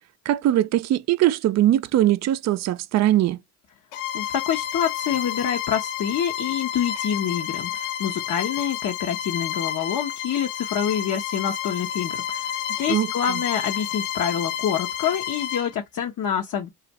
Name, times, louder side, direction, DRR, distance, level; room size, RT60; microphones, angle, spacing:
voice 1, 0.3-3.4 12.9-13.4, right 13 dB, 45° right, 0.4 m, -21 dB
Bowed string instrument, 3.9-15.7, left 10 dB, 90° left, 0.6 m, -30 dB
voice 2, 4.1-16.7, left 8 dB, 45° left, 0.9 m, -27 dB
2.5 x 2.5 x 4.1 m
supercardioid pair, 85°, 40 cm